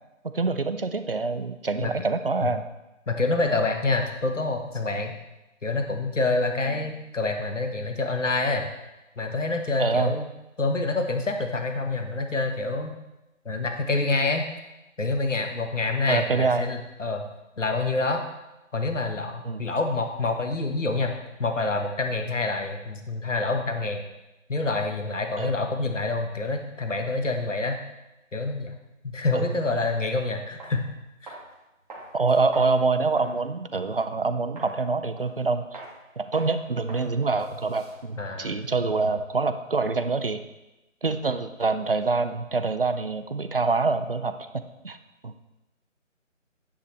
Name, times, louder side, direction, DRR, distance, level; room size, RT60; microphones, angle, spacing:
voice 1, 0.3-2.7 6.7-6.8 9.8-10.2 16.1-16.7 19.4-19.6 25.4-25.5 29.3-29.5 32.1-35.8 36.2-40.4 41.0-45.0 45.2-45.3, right 3 dB, 45° right, 10 dB, 0.6 m, -26 dB
voice 2, 3.1-5.1 5.6-8.7 9.2-10.2 10.6-12.9 13.4-14.4 15.0-17.3 17.6-18.2 18.7-21.1 21.4-24.0 24.5-27.8 28.3-28.7 29.0-30.9 31.2-31.4 38.2-38.6, left 3 dB, 70° left, 5 dB, 1.4 m, -27 dB
sound 1, 30.6-30.8 31.3-31.5 31.9-33.4 33.8-33.9 34.6-34.8 35.2-35.4 35.7-35.9 36.3-36.5 36.9-37.1 37.4-39.3, right 2 dB, 30° right, 2.0 m, -43 dB
10.0 x 9.2 x 3.2 m, 0.99 s
figure-of-eight pair, 160°, 39 cm